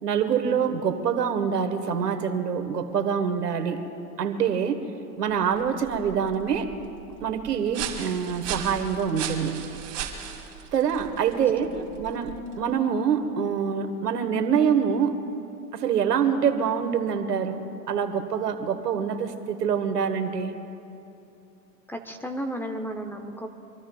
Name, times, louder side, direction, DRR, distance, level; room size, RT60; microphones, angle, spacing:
voice 1, 0.0-3.8 4.2-4.8 5.2-6.7 7.2-9.6 10.7-15.2 15.7-20.5, right 7 dB, 90° right, 8 dB, 1.6 m, -25 dB
sound 1, 5.3-12.7, right 9 dB, 35° right, 3.2 m, -38 dB
voice 2, 21.9-23.5, equal, 5° left, 5 dB, 0.7 m, -34 dB
26.0 x 23.0 x 2.4 m, 2.7 s
hypercardioid pair, 120°, 46 cm